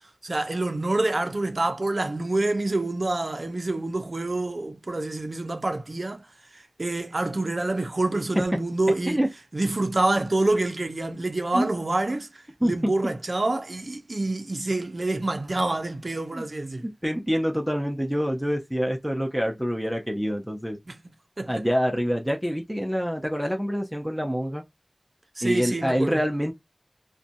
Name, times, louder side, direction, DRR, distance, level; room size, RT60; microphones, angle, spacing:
voice 1, 0.2-6.3 6.8-9.2 9.5-16.9 20.9-21.0 21.4-21.6 25.4-26.2, right 2 dB, 60° right, 0.5 m, -27 dB
voice 2, 12.6-13.1 16.3-16.5 16.8-20.8 21.5-24.6 25.4-26.5, equal, 5° right, 0.6 m, -26 dB
2.6 x 2.2 x 2.5 m
wide cardioid pair, 55°, 0 cm